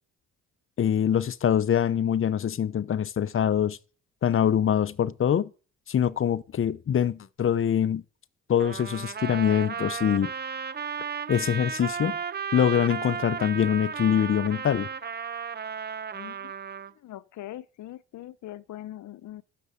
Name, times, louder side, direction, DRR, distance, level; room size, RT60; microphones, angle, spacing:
voice 1, 0.8-3.8 4.2-5.5 5.9-8.0 8.5-10.3 11.3-12.2 12.5-14.9, left 9 dB, 45° left, 0.8 m, -24 dB
Trumpet, 8.6-16.9, right 7 dB, 35° right, 0.9 m, -34 dB
voice 2, 16.1-16.5 17.0-19.4, left 13 dB, 70° left, 0.9 m, -42 dB
12.0 x 6.9 x 8.1 m
cardioid pair, 90°, 30 cm